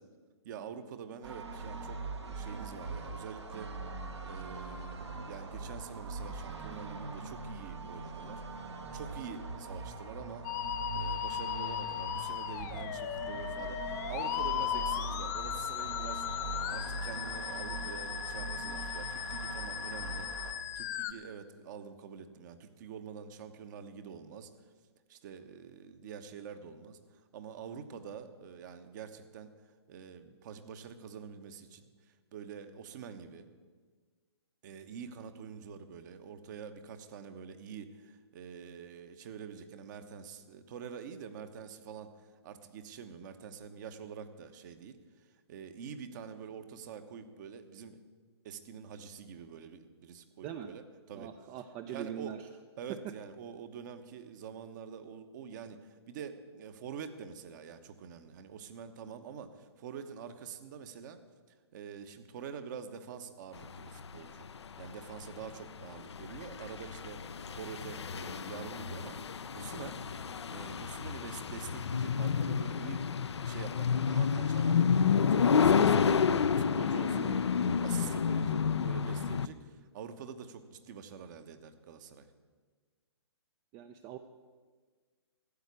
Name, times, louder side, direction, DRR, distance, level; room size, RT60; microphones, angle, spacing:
voice 1, 0.4-3.7 4.2-8.4 8.9-10.5 10.9-20.3 20.7-24.5 25.1-27.0 27.3-29.5 29.9-31.9 32.3-33.5 34.6-45.0 45.5-48.0 48.4-51.3 51.9-52.4 52.8-61.2 61.7-64.5 64.8-70.0 70.5-77.5 77.8-82.3, right 7 dB, 45° right, 9 dB, 1.1 m, -46 dB
sound 1, 1.2-20.5, right 3 dB, 75° right, 1.8 m, -41 dB
Musical instrument, 10.4-21.1, left 11 dB, 40° left, 1.0 m, -37 dB
voice 2, 51.1-52.4 77.1-77.4 83.7-84.2, right 9 dB, 25° right, 8 dB, 0.5 m, -42 dB
sound 2, 63.6-79.5, left 6 dB, 75° left, 0.6 m, -30 dB
13.0 x 8.3 x 8.3 m, 1.5 s
hypercardioid pair, 130°, 14 cm